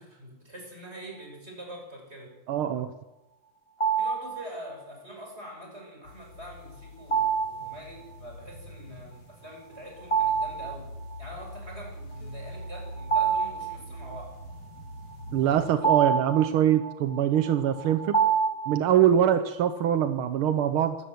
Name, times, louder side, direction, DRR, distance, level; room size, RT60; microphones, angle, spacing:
voice 1, 0.0-2.4 4.0-10.9 11.2-14.4, equal, 20° right, 1 dB, 6.0 m, -44 dB
voice 2, 2.5-2.9 15.3-18.2 18.7-21.0, right 10 dB, 70° right, 9 dB, 1.3 m, -23 dB
sound 1, 3.8-4.4 7.1-7.7 10.0-10.7 11.1-11.2 12.6-14.2 15.1-19.0, right 6 dB, 30° left, 0.5 m, -27 dB
sound 2, 6.0-15.7, equal, 70° left, 4.7 m, -44 dB
23.5 x 14.0 x 7.9 m, 1.0 s
omnidirectional pair, 3.5 m